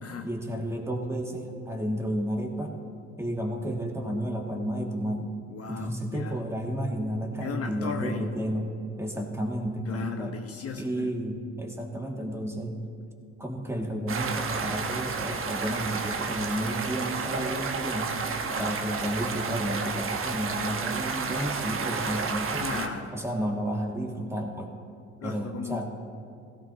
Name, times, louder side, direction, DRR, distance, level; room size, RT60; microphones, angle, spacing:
voice 1, 0.2-2.8 3.2-5.3 5.7-8.7 9.0-10.4 10.7-12.8 13.4-18.1 18.6-22.8 23.1-24.7 25.2-25.9, equal, 5° right, 1 dB, 2.0 m, -32 dB
voice 2, 5.5-6.4 7.4-8.4 9.9-11.1 18.4-18.8 22.6-23.1 25.2-25.9, left 6 dB, 40° left, 4 dB, 1.0 m, -36 dB
sound 1, 14.1-22.9, right 5 dB, 35° right, 1.3 m, -31 dB
16.0 x 15.0 x 2.8 m, 2.3 s
hypercardioid pair, 65°, 37 cm